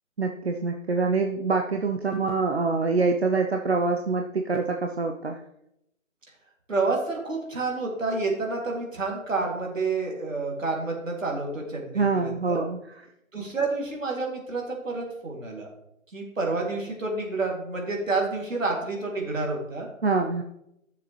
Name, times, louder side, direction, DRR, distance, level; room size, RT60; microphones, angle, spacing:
voice 1, 0.2-5.4 11.9-12.8 20.0-20.4, right 4 dB, 50° right, 4 dB, 0.7 m, -25 dB
voice 2, 6.7-12.7 13.3-15.7 16.1-19.9, right 3 dB, 70° right, 0 dB, 2.7 m, -29 dB
10.5 x 6.8 x 3.2 m, 0.80 s
figure-of-eight pair, 160°, 41 cm